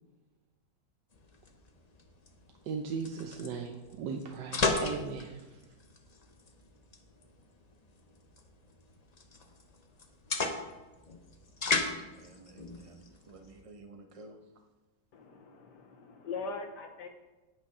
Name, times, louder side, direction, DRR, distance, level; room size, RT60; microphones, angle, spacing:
sound 1, 1.1-13.6, left 3 dB, 35° left, 0.6 m, -37 dB
voice 1, 2.6-5.6, right 5 dB, 75° right, 3 dB, 1.4 m, -38 dB
voice 2, 11.8-14.4, right 2 dB, 25° right, 5 dB, 0.7 m, -53 dB
voice 3, 15.1-17.1, left 4 dB, 75° left, 3 dB, 1.5 m, -41 dB
8.9 x 8.8 x 5.4 m, 1.1 s
omnidirectional pair, 1.9 m